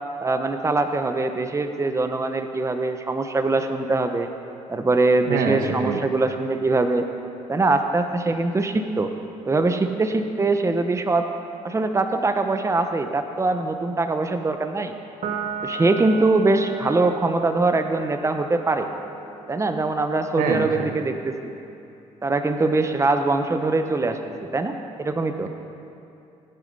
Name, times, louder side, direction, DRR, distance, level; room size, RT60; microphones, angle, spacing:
voice 1, 0.2-4.3 4.7-7.1 7.5-9.1 9.4-11.3 11.6-14.9 15.6-18.9 19.5-21.5 22.2-24.2 24.5-25.5, right 3 dB, 20° right, 7 dB, 1.0 m, -22 dB
voice 2, 5.3-6.0 20.3-20.9, right 5 dB, 80° right, 4 dB, 1.5 m, -25 dB
Piano, 15.2-21.9, right 5 dB, 60° right, 1.4 m, -37 dB
18.5 x 10.0 x 5.6 m, 2.7 s
supercardioid pair, 75°, 14 cm